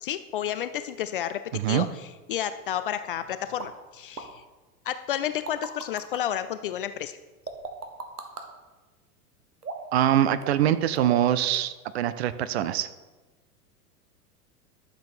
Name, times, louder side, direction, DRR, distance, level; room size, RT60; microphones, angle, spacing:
voice 1, 0.0-1.4 1.7-4.4 4.9-7.2, left 10 dB, 40° left, 12 dB, 0.4 m, -31 dB
voice 2, 1.5-1.9 9.9-12.9, right 11 dB, 45° right, 14 dB, 0.6 m, -24 dB
sound 1, 3.6-3.7 4.2-4.3 5.1-6.2 7.5-8.5 9.6-10.0 10.4-10.7 11.0-11.3 11.5-11.6, right 4 dB, 75° right, 1.4 m, -37 dB
11.5 x 6.8 x 4.3 m, 1.2 s
figure-of-eight pair, 90°, 46 cm